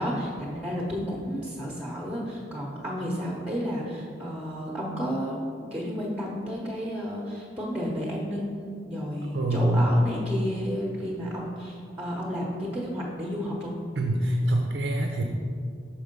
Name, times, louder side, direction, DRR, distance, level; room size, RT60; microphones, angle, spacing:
voice 1, 0.0-13.8, equal, 10° right, -3 dB, 0.8 m, -32 dB
voice 2, 9.3-9.9 14.0-15.2, right 1 dB, 75° right, 2 dB, 0.6 m, -25 dB
6.0 x 4.8 x 5.2 m, 2.2 s
head